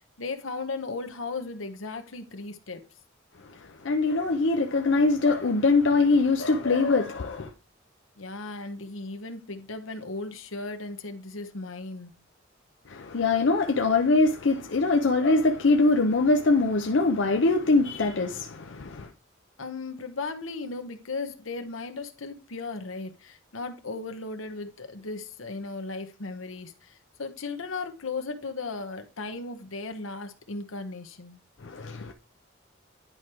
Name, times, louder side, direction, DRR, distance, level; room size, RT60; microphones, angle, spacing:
voice 1, 0.0-2.8 8.2-12.1 19.6-31.4, left 3 dB, 90° left, 1.1 m, -36 dB
voice 2, 3.8-7.5 12.9-19.1 31.6-32.1, left 3 dB, 65° left, 0.6 m, -23 dB
10.5 x 4.8 x 3.0 m
head